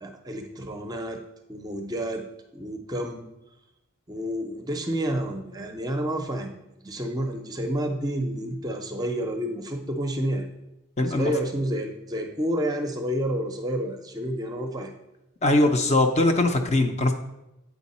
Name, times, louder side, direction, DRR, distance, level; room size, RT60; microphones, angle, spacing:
voice 1, 0.0-1.2 1.5-2.3 2.5-3.3 4.1-6.5 6.8-10.5 11.1-14.9, right 1 dB, 15° right, 4 dB, 0.5 m, -29 dB
voice 2, 11.0-11.3 15.4-17.1, left 2 dB, 30° left, 5 dB, 0.5 m, -21 dB
8.2 x 4.6 x 4.1 m, 0.94 s
head